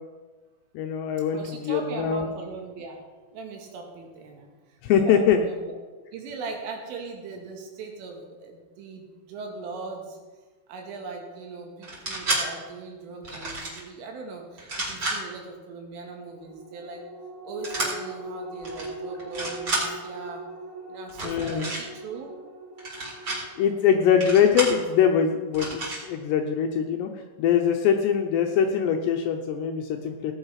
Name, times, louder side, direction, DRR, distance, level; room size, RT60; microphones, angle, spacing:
voice 1, 0.7-2.3 4.8-5.4 21.2-21.7 23.6-27.1 27.4-30.3, left 8 dB, 80° left, 4 dB, 2.5 m, -23 dB
voice 2, 1.3-3.0 3.3-4.5 4.9-5.8 6.1-10.2 10.7-17.0 17.4-20.4 20.9-22.3, right 4 dB, 80° right, 1 dB, 4.7 m, -39 dB
sound 1, 11.8-12.4 13.2-13.8 14.6-15.2 17.6-17.9 18.6-18.9 19.2-19.8 21.1-21.8 22.8-23.4 24.2-24.8 25.5-26.0, right 2 dB, 25° right, 4.8 m, -30 dB
sound 2, 16.4-27.2 27.6-27.7, right 2 dB, 45° right, 2.8 m, -41 dB
18.0 x 8.8 x 5.8 m, 1.3 s
omnidirectional pair, 5.7 m